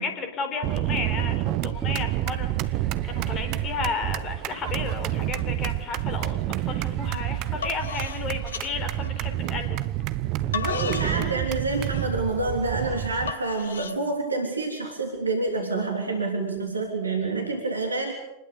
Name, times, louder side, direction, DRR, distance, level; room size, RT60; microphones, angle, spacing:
voice 1, 0.0-2.5 3.0-9.8, left 4 dB, 30° left, 7 dB, 4.4 m, -33 dB
sound 1, 0.6-13.3, right 14 dB, 40° right, 1.0 m, -29 dB
sound 2, 1.8-12.3 12.9-13.0, right 4 dB, 15° right, 4.2 m, -47 dB
sound 3, 6.8-7.1 7.4-9.5 10.1-14.0, left 6 dB, 65° left, 1.3 m, -35 dB
voice 2, 10.5-18.1, right 3 dB, 80° right, 3 dB, 3.4 m, -28 dB
27.0 x 20.5 x 6.9 m, 0.97 s
figure-of-eight pair, 90°, 0 cm